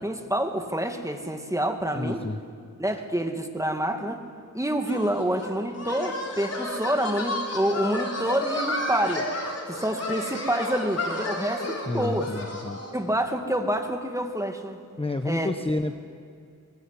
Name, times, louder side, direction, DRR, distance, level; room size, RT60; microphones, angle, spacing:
voice 1, 0.0-2.2 2.8-4.2 4.5-9.3 9.7-12.3 12.9-14.8 15.2-15.5, right 1 dB, 10° right, 4 dB, 2.1 m, -27 dB
voice 2, 1.9-2.4 11.9-12.8 15.0-16.0, left 2 dB, 15° left, 7 dB, 0.9 m, -29 dB
sound 1, 4.9-13.0, left 1 dB, 45° left, 4.1 m, -32 dB
22.0 x 21.0 x 8.4 m, 2.3 s
wide cardioid pair, 90°, 34 cm